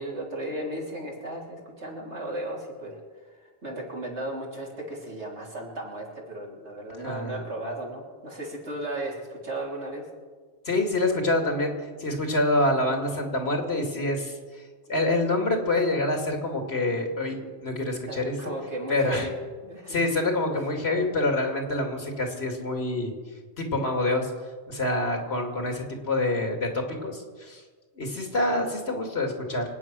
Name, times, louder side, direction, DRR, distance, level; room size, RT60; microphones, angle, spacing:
voice 1, 0.0-10.0 18.1-19.4 19.6-20.0, right 1 dB, 80° right, -2 dB, 3.6 m, -35 dB
voice 2, 7.0-7.5 10.7-11.7 12.0-14.4 14.9-18.3 18.9-19.3 19.9-23.1 23.6-24.3 24.7-27.6 28.0-29.8, left 2 dB, 65° left, 3 dB, 2.6 m, -26 dB
25.0 x 9.2 x 6.1 m, 1.5 s
omnidirectional pair, 1.2 m